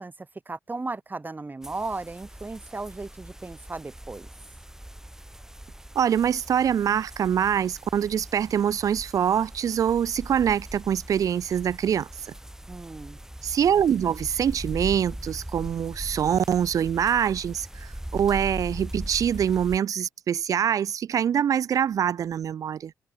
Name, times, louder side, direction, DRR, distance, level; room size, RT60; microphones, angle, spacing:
voice 1, 0.0-4.3 12.7-13.2, right 3 dB, 25° right, 2.2 m, -36 dB
sound 1, 1.6-19.8, right 1 dB, 5° right, 2.7 m, -40 dB
voice 2, 6.0-12.3 13.4-22.9, right 8 dB, 50° right, 0.4 m, -24 dB
hypercardioid pair, 45°, 7 cm